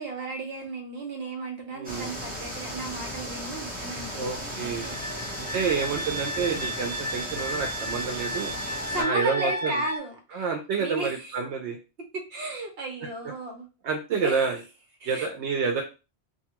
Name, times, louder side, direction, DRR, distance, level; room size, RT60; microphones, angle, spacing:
voice 1, 0.0-5.5 8.9-10.4 10.8-11.4 12.1-13.7 14.1-14.5 15.0-15.3, right 2 dB, 65° right, 3 dB, 1.0 m, -35 dB
voice 2, 1.7-2.1 4.2-4.9 5.4-8.5 9.0-9.8 10.3-11.8 13.8-14.6 15.1-15.8, right 5 dB, 80° right, 2 dB, 0.9 m, -28 dB
sound 1, 1.8-9.0, equal, 10° right, 0.7 m, -36 dB
sound 2, 4.0-10.0, equal, 70° left, 0.9 m, -34 dB
2.7 x 2.3 x 2.8 m, 0.30 s
omnidirectional pair, 1.1 m